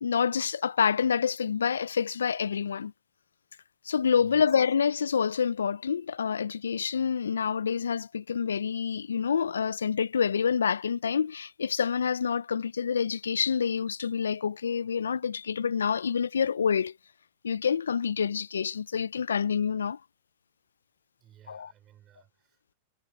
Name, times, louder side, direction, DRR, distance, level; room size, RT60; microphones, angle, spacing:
voice 1, 0.0-2.9 3.8-16.9 17.4-20.0 21.5-21.7, left 6 dB, 85° left, 0.4 m, -27 dB
voice 2, 21.2-22.8, right 11 dB, 35° right, 4.9 m, -57 dB
hypercardioid pair, 105°, 0 cm